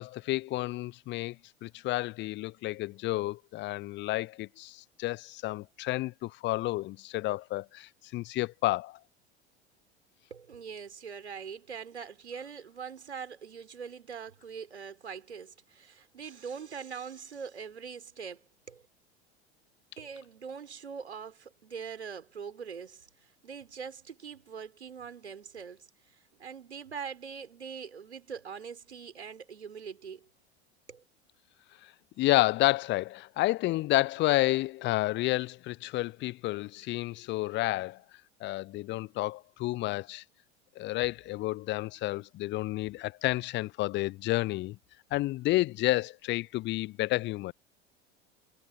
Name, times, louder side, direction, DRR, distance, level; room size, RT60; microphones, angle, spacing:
voice 1, 0.0-1.4 1.6-9.0 32.2-38.0 38.4-40.2 40.8-44.8 45.1-47.5, left 18 dB, 35° left, 0.7 m, -30 dB
voice 2, 10.3-18.8 20.0-30.3 30.9-31.0, right 6 dB, 80° right, 4.4 m, -43 dB
figure-of-eight pair, 75°, 33 cm